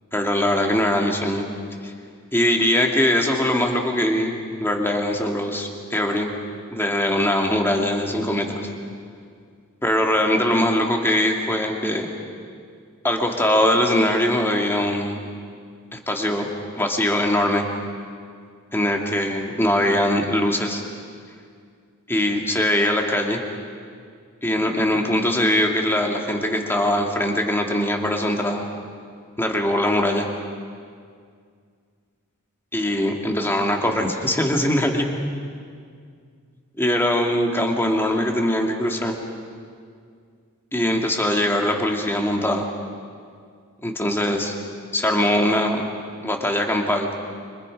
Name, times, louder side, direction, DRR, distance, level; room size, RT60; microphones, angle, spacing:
voice 1, 0.1-1.5 2.3-4.3 4.6-6.3 6.7-8.7 9.8-12.1 13.0-15.2 15.9-16.5 16.8-17.6 18.7-20.8 22.1-23.4 24.4-28.6 29.4-30.3 32.7-35.1 36.8-39.2 40.7-42.7 43.8-44.5 44.9-45.8 46.2-47.1, left 1 dB, 10° left, 2 dB, 2.2 m, -21 dB
29.0 x 26.0 x 5.3 m, 2.2 s
head